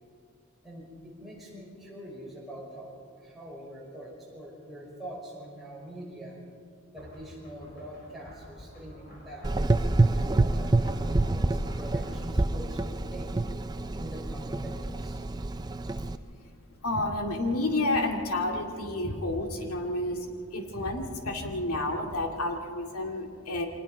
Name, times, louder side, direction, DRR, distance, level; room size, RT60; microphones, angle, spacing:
voice 1, 0.6-6.4 6.9-13.3 14.0-15.2, equal, ahead, -5 dB, 5.2 m, -44 dB
sound 1, 7.0-12.2, equal, 45° left, 5.4 m, -49 dB
Gurgling / Engine, 9.4-16.2, right 2 dB, 20° right, 0.4 m, -27 dB
voice 2, 16.0-16.3 16.8-20.3 20.5-23.7, left 2 dB, 90° left, 3 dB, 2.4 m, -30 dB
24.5 x 19.5 x 5.6 m, 2.3 s
head